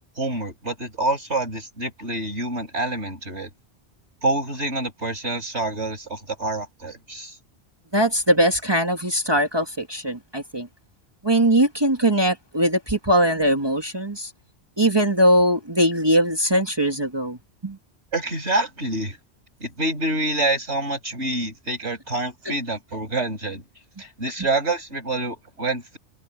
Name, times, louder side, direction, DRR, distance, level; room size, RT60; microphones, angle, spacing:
voice 1, 0.2-3.5 4.2-7.4 18.1-19.2 19.6-23.6 24.0-26.0, right 2 dB, 80° right, 6.3 m, -27 dB
voice 2, 7.9-10.7 11.2-14.3 14.8-17.4 17.6-17.8, right 1 dB, 20° right, 1.7 m, -20 dB
omnidirectional pair, 1.1 m